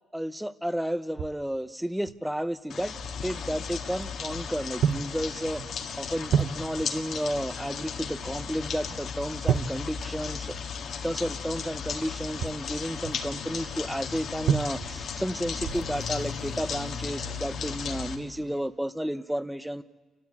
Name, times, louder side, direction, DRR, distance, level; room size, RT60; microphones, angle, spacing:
voice 1, 0.1-10.6 11.0-19.8, equal, 5° right, 13 dB, 0.8 m, -32 dB
sound 1, 1.1-1.5 2.1-2.2 3.0-3.2 4.0-4.5 4.8-5.2 5.6-5.8 6.3-7.0 8.2-8.6 8.8-9.0 9.4-10.6 12.2-13.3 14.4-15.1 15.6-16.0 16.5-16.7, right 8 dB, 70° right, 0.7 m, -30 dB
sound 2, 2.7-18.2, left 6 dB, 65° left, 1.8 m, -36 dB
sound 3, 13.8-18.7, left 5 dB, 90° left, 1.3 m, -44 dB
28.5 x 13.0 x 8.6 m, 1.4 s
cardioid pair, 90°, 0 cm